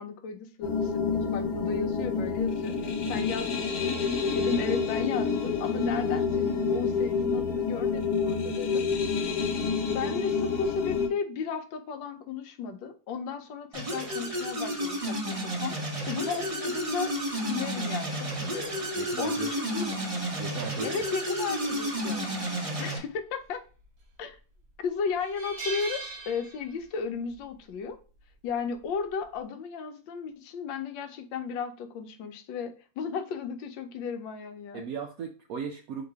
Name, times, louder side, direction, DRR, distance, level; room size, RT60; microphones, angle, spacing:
voice 1, 0.0-8.9 9.9-15.8 16.1-17.1 17.5-18.8 19.2-20.0 20.8-22.3 22.8-23.6 24.2-24.4 24.8-28.0 28.4-34.8, left 6 dB, 80° left, 8 dB, 1.4 m, -34 dB
sound 1, 0.6-11.1, left 5 dB, 65° left, 1.3 m, -28 dB
sound 2, 13.7-23.0, right 1 dB, 25° right, 0.7 m, -31 dB
voice 2, 19.0-19.6 20.4-21.0 34.7-36.0, right 6 dB, 75° right, 4 dB, 0.8 m, -37 dB
sound 3, 23.8-24.3 24.7-24.8 25.2-27.0 27.3-27.5 28.8-29.1, right 3 dB, 55° right, 1.3 m, -39 dB
3.9 x 2.9 x 4.6 m, 0.36 s
omnidirectional pair, 2.1 m